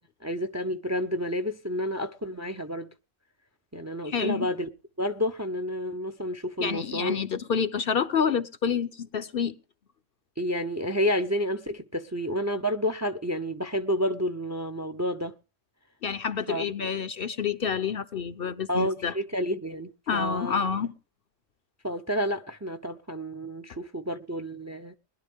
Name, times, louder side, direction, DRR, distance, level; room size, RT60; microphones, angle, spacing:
voice 1, 0.2-2.9 3.7-4.7 5.0-7.2 10.4-15.3 16.5-16.6 18.7-20.6 21.8-25.0, equal, 15° right, 0.6 m, -30 dB
voice 2, 4.0-4.5 6.6-9.5 16.0-19.1 20.1-20.9, left 6 dB, 55° left, 1.0 m, -28 dB
21.0 x 11.5 x 3.6 m
omnidirectional pair, 1.3 m